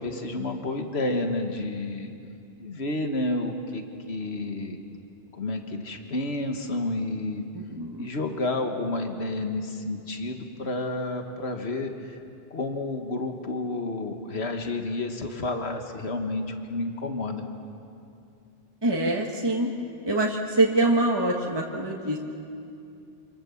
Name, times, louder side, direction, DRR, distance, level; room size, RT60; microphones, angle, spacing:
voice 1, 0.0-2.1 2.6-4.8 5.3-7.4 8.0-12.2 12.5-17.4, left 2 dB, 90° left, 4 dB, 1.9 m, -30 dB
voice 2, 7.5-8.1 18.8-19.7 20.0-22.2, right 2 dB, 25° right, -1 dB, 1.6 m, -24 dB
27.0 x 26.5 x 7.3 m, 2.6 s
omnidirectional pair, 1.1 m